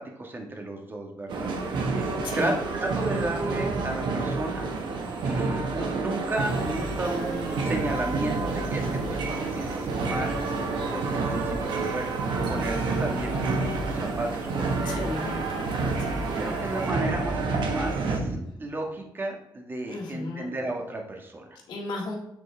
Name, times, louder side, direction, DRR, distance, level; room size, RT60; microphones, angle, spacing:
voice 1, 0.0-4.7 5.2-15.1 16.4-21.6, right 2 dB, 25° right, 2 dB, 1.4 m, -34 dB
sound 1, 1.3-18.2, right 3 dB, 75° right, 1.2 m, -29 dB
sound 2, 6.3-16.9, right 2 dB, 50° right, 1.8 m, -42 dB
voice 2, 14.8-16.1 19.9-20.6 21.7-22.2, left 3 dB, 80° left, -1 dB, 1.9 m, -35 dB
8.1 x 4.5 x 3.3 m, 0.83 s
cardioid pair, 105°, 8 cm